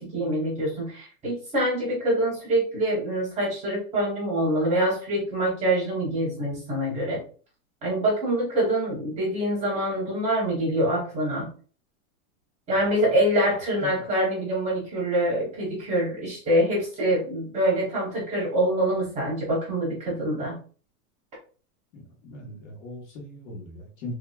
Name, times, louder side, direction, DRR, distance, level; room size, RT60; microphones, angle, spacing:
voice 1, 0.0-7.2 7.8-11.5 12.7-20.6, right 1 dB, 15° right, -3 dB, 0.9 m, -25 dB
voice 2, 21.9-24.1, left 1 dB, 50° left, 1 dB, 1.3 m, -39 dB
3.5 x 2.8 x 2.3 m, 0.39 s
supercardioid pair, 175°, 42 cm